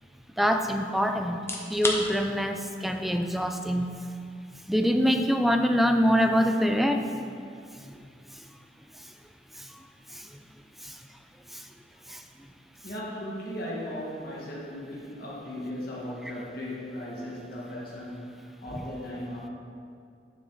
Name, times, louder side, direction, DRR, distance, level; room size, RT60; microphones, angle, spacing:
voice 1, 0.4-1.4 1.7-3.9 4.7-7.1 9.6-9.7 10.1-10.3 10.8-10.9 11.5-11.6 12.1-12.2, equal, ahead, 5 dB, 0.4 m, -24 dB
sound 1, 1.3-16.2, left 2 dB, 15° left, 0.8 m, -44 dB
voice 2, 12.8-19.5, left 1 dB, 60° left, -6 dB, 1.7 m, -37 dB
9.2 x 7.2 x 4.0 m, 2.4 s
head